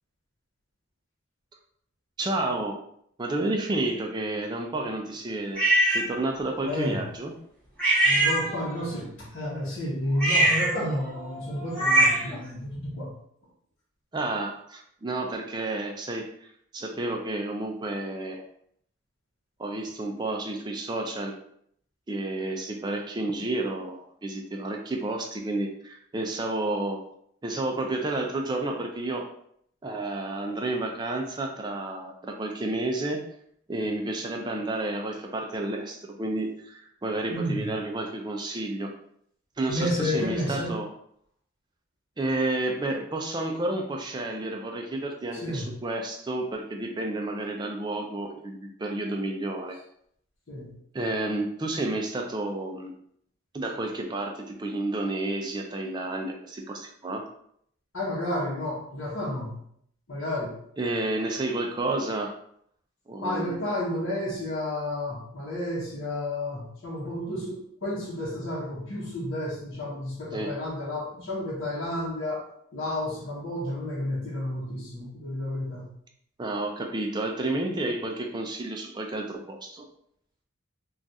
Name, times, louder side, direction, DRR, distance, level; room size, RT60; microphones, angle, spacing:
voice 1, 2.2-2.8 3.2-5.6 5.9-7.3 14.1-18.4 19.6-21.3 22.1-27.0 27.4-29.3 29.8-33.2 33.7-38.9 39.6-40.9 42.2-49.8 50.9-52.9 53.5-57.3 60.8-62.3 63.1-63.6 70.3-70.5 76.4-79.9, right 2 dB, 20° right, 2 dB, 0.3 m, -31 dB
sound 1, 5.6-6.1 7.8-8.9 10.1-12.4, right 1 dB, 5° left, 0.9 m, -23 dB
voice 2, 6.6-7.0 8.0-13.2 37.3-37.7 39.7-40.7 45.3-45.7 50.5-50.7 57.9-59.6 60.1-60.6 63.2-72.5 72.7-75.9, left 1 dB, 65° left, -7 dB, 0.8 m, -31 dB
2.4 x 2.3 x 4.0 m, 0.68 s
head